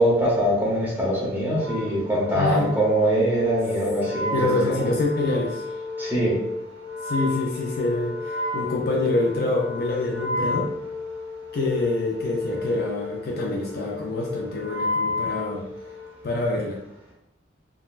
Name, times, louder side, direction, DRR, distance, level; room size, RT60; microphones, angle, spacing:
voice 1, 0.0-4.8 6.0-6.4, right 1 dB, 10° right, -6 dB, 0.9 m, -23 dB
Wind instrument woodwind instrument, 1.5-16.2, left 2 dB, 85° right, 1.1 m, -32 dB
voice 2, 2.3-2.7 4.3-5.6 7.0-10.7 11.5-15.6 16.2-16.8, left 2 dB, 50° left, -1 dB, 0.4 m, -26 dB
3.7 x 2.2 x 2.4 m, 0.86 s
head